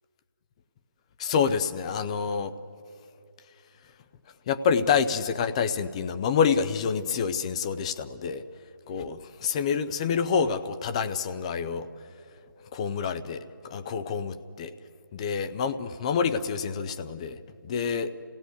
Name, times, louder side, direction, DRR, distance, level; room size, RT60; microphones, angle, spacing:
voice 1, 1.2-2.5 4.5-8.4 8.9-11.9 12.7-14.7 15.1-18.1, left 6 dB, 15° left, 11 dB, 0.5 m, -27 dB
26.5 x 16.5 x 8.1 m, 2.4 s
figure-of-eight pair, 155°, 11 cm